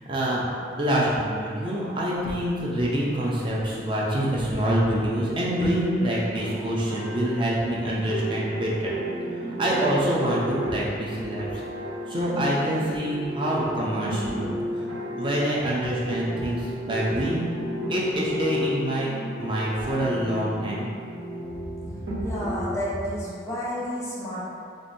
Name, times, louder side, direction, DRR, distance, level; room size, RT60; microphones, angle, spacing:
voice 1, 0.1-0.4 0.8-8.9 9.5-11.6 12.1-14.5 14.7-14.8 15.2-17.4 17.9-19.1 19.4-20.9, right 1 dB, 25° right, -5 dB, 0.6 m, -26 dB
sound 1, 6.2-22.7, equal, 75° right, 1.1 m, -33 dB
voice 2, 21.9-24.5, equal, 15° left, -8 dB, 0.9 m, -31 dB
4.8 x 2.6 x 2.7 m, 2.3 s
head